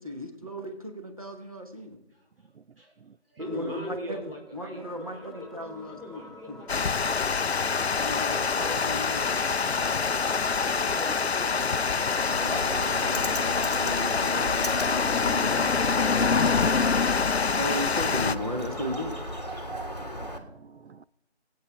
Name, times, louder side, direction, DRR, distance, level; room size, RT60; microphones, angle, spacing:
voice 1, 0.0-2.0 3.4-6.2 6.5-6.7 8.0-10.2 12.3-16.7 17.6-19.2, left 1 dB, 35° right, 1.2 m, -36 dB
voice 2, 2.1-2.5 2.8-3.0 3.3-5.5 5.9-7.7 10.6-12.1, equal, 55° right, 3.6 m, -42 dB
sound 1, 3.4-19.4, left 2 dB, ahead, 0.5 m, -48 dB
Water, 6.7-18.4, left 5 dB, 70° left, 0.5 m, -25 dB
voice 3, 8.0-8.4 10.1-11.0 12.6-12.7 19.7-21.0, right 6 dB, 75° right, 0.5 m, -53 dB
Bird, 12.2-20.4, equal, 40° left, 1.1 m, -36 dB
23.5 x 8.6 x 3.4 m
figure-of-eight pair, 180°, 33 cm